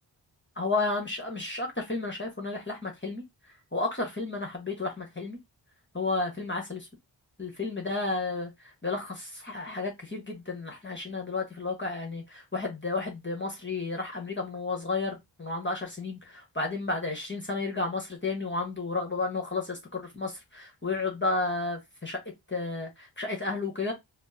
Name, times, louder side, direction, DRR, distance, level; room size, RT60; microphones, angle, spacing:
voice 1, 0.6-3.2 3.7-5.4 5.9-6.9 7.4-8.5 8.8-22.2 22.5-23.9, left 3 dB, 25° left, 1.2 m, -32 dB
4.4 x 2.1 x 2.7 m
cardioid pair, 40°, 47 cm